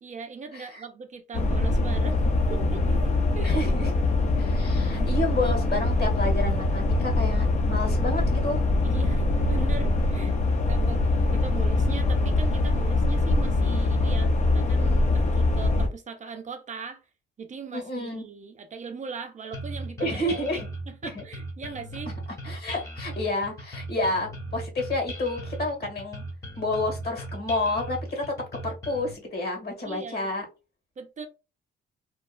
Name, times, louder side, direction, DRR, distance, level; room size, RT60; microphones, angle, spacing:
voice 1, 0.0-2.2 2.5-3.6 4.9-5.1 8.8-17.0 17.4-22.1 29.8-30.5 31.0-31.3, right 5 dB, 40° right, 0.5 m, -39 dB
sound 1, 1.3-15.9, left 2 dB, 35° left, 0.5 m, -23 dB
voice 2, 3.4-4.0 4.4-8.6 17.7-18.2 20.0-20.7 21.1-21.2 22.4-26.2 26.6-28.3 28.6-30.4, left 2 dB, 55° left, 1.5 m, -30 dB
sound 2, 19.5-29.1, right 1 dB, 15° left, 0.9 m, -38 dB
2.8 x 2.3 x 2.2 m
cardioid pair, 90°, 20 cm